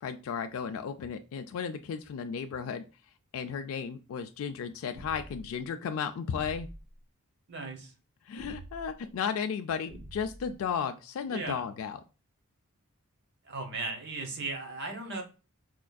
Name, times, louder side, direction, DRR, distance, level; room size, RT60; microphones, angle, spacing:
voice 1, 0.0-2.8 3.3-6.7 8.3-12.0, left 6 dB, 70° left, 6 dB, 0.3 m, -34 dB
sound 1, 4.9-5.5 6.3-6.9 8.4-8.9 9.9-10.5, right 1 dB, 90° right, 1.7 m, -46 dB
voice 2, 7.5-7.9 11.3-11.6 13.4-15.2, right 3 dB, 50° right, 4 dB, 0.8 m, -37 dB
4.3 x 2.5 x 2.2 m, 0.32 s
head